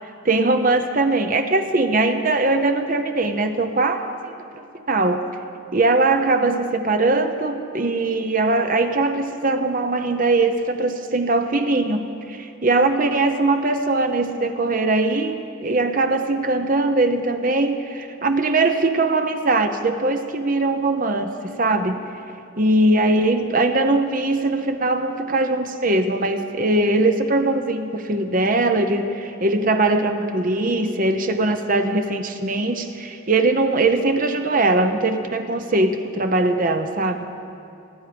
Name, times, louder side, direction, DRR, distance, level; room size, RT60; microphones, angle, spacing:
voice 1, 0.2-5.3 5.7-22.1 22.6-37.3, right 2 dB, 40° right, 7 dB, 0.8 m, -21 dB
28.0 x 9.8 x 5.2 m, 2.6 s
head